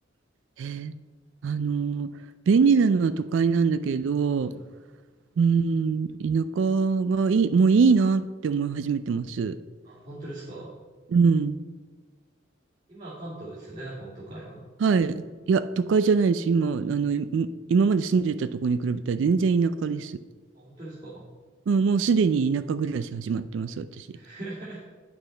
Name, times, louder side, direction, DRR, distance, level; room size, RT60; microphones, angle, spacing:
voice 1, 0.6-0.9 1.4-2.1 2.5-4.5 5.4-9.6 11.1-11.6 14.8-20.2 21.7-24.1, right 5 dB, 70° right, 13 dB, 0.3 m, -23 dB
voice 2, 9.8-10.8 12.9-14.7 20.5-21.3 24.1-24.8, right 1 dB, 40° right, -9 dB, 2.2 m, -40 dB
9.2 x 6.0 x 3.8 m, 1.4 s
head